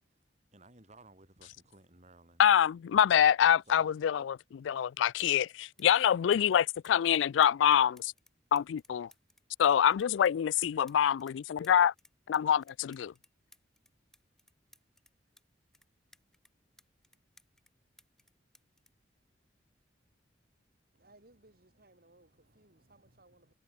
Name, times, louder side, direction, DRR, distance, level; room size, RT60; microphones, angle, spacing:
voice 1, 0.5-2.4 3.7-3.9, right 2 dB, 40° right, 5.8 m, -57 dB
voice 2, 2.4-8.1 8.5-9.1 9.6-11.9 12.3-13.1, left 9 dB, 85° left, 0.3 m, -26 dB
sound 1, 5.2-5.5 5.8-11.4 11.6-15.4 15.7-17.7 18.0-19.8 20.7-21.0, left 1 dB, 5° left, 7.0 m, -63 dB
voice 3, 20.9-23.5, right 2 dB, 55° right, 6.0 m, -62 dB
head